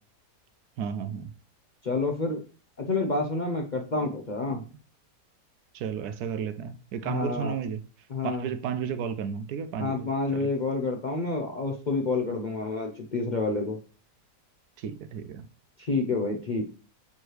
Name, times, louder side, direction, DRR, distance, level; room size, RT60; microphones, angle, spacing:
voice 1, 0.8-1.3 4.0-4.1 5.7-7.8 8.2-10.1 10.3-10.5 14.8-15.5, right 7 dB, 75° right, 1.0 m, -33 dB
voice 2, 1.8-2.4 2.8-4.6 7.0-7.6 8.1-8.5 9.8-13.8 15.8-16.6, left 3 dB, 50° left, 0.5 m, -28 dB
7.2 x 3.2 x 4.6 m
omnidirectional pair, 1.8 m